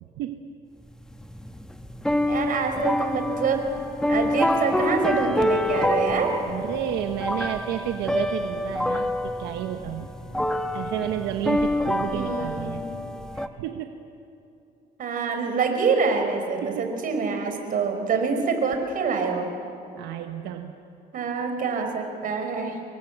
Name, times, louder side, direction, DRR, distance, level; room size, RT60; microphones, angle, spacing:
voice 1, 0.0-0.5 6.5-10.1 10.7-12.8 13.3-13.9 16.6-16.9 20.0-20.7, right 11 dB, 85° right, 5 dB, 1.3 m, -31 dB
sound 1, 0.9-13.5, left 1 dB, 5° left, 1.3 m, -27 dB
voice 2, 2.3-3.6 4.1-6.3 12.0-12.8 15.0-19.5 21.1-22.8, right 5 dB, 55° right, 5 dB, 4.8 m, -26 dB
25.5 x 23.0 x 8.1 m, 2.7 s
cardioid pair, 110°, 17 cm